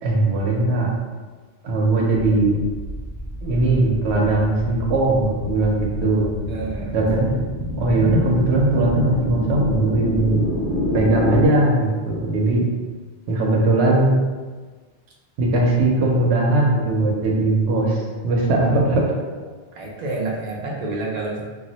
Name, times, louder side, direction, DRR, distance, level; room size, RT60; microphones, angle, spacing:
voice 1, 0.0-0.9 1.6-2.6 3.4-6.3 6.9-7.3 7.8-10.4 10.9-12.6 13.3-14.2 15.4-19.0, right 2 dB, 75° right, -2 dB, 0.9 m, -19 dB
sound 1, 2.1-11.5, left 1 dB, 5° left, 0.7 m, -28 dB
voice 2, 6.5-7.0 19.7-21.4, right 2 dB, 55° right, -3 dB, 0.5 m, -28 dB
2.4 x 2.0 x 3.9 m, 1.4 s
omnidirectional pair, 1.2 m